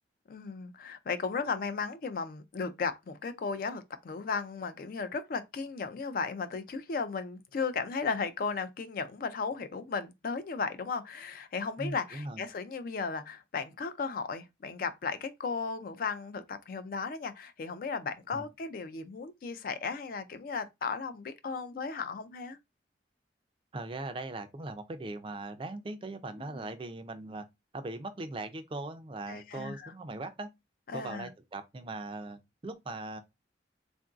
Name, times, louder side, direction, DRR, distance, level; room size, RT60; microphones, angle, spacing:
voice 1, 0.3-22.6 26.4-26.7 29.3-29.9 30.9-31.3, left 5 dB, 50° left, 0.4 m, -35 dB
voice 2, 11.8-12.4 18.3-18.4 23.7-27.4 27.7-30.5 30.9-33.2, right 2 dB, 30° right, 0.4 m, -40 dB
3.7 x 2.5 x 2.3 m
head